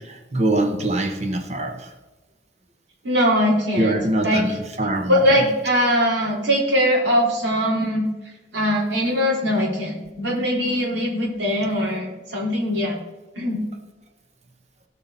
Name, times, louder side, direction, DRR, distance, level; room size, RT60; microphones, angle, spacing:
voice 1, 0.0-1.9 3.7-5.4, right 1 dB, 35° right, 5 dB, 1.0 m, -24 dB
voice 2, 3.0-4.6 5.1-8.1 8.5-13.0 13.4-13.6, equal, 70° right, -4 dB, 4.0 m, -21 dB
17.0 x 5.7 x 4.0 m, 1.2 s
head